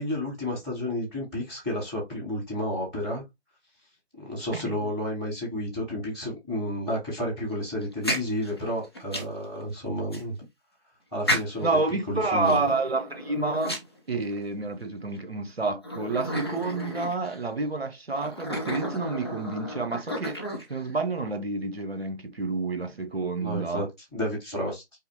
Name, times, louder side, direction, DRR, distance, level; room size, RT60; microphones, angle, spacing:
voice 1, 0.0-3.2 4.2-10.4 11.1-11.8 12.1-12.6 23.4-24.8, left 1 dB, ahead, 1.1 m, -31 dB
sound 1, 7.8-9.4 10.1-10.2 11.3-11.8 12.4-14.5 15.1-15.2 15.8-17.4 18.2-20.9, equal, 20° left, 0.7 m, -32 dB
voice 2, 11.6-13.8 14.1-20.4 20.7-23.8, right 3 dB, 60° right, 1.1 m, -29 dB
5.5 x 2.1 x 4.1 m
figure-of-eight pair, 155°, 35 cm